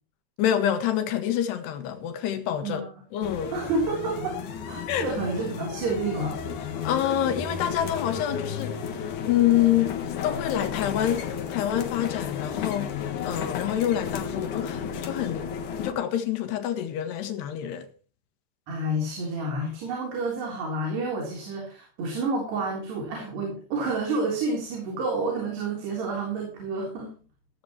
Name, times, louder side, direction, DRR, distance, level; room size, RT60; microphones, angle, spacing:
voice 1, 0.4-2.8 3.1-3.5 4.9-5.1 6.8-15.5 15.8-17.9, left 11 dB, 80° left, 3.7 m, -27 dB
sound 1, 3.2-15.9, left 7 dB, 60° left, 2.6 m, -33 dB
voice 2, 3.5-6.4 18.7-27.1, right 2 dB, 80° right, 5.7 m, -29 dB
15.5 x 15.5 x 3.1 m
omnidirectional pair, 4.7 m